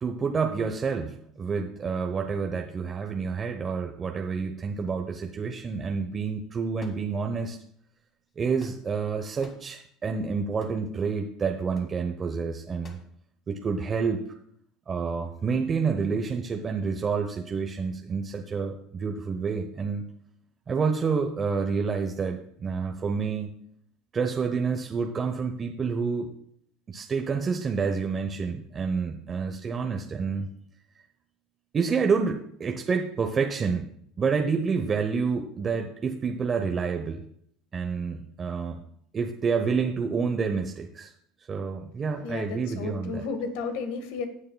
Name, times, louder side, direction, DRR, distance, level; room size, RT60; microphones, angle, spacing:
voice 1, 0.0-7.6 8.4-13.0 13.5-14.2 14.9-20.0 20.7-23.5 24.1-26.3 26.9-30.5 31.7-33.9 34.2-37.2 37.7-38.8 39.1-41.1 41.5-43.2, right 5 dB, 35° right, 4 dB, 0.9 m, -28 dB
sound 1, 6.8-7.5 8.3-9.0 9.4-9.7 10.6-10.9 11.7-12.0 12.8-13.1, left 2 dB, 35° left, 2.0 m, -52 dB
voice 2, 42.2-44.3, left 5 dB, 75° left, 7 dB, 1.5 m, -33 dB
18.0 x 6.6 x 2.3 m, 0.68 s
supercardioid pair, 90°, 0 cm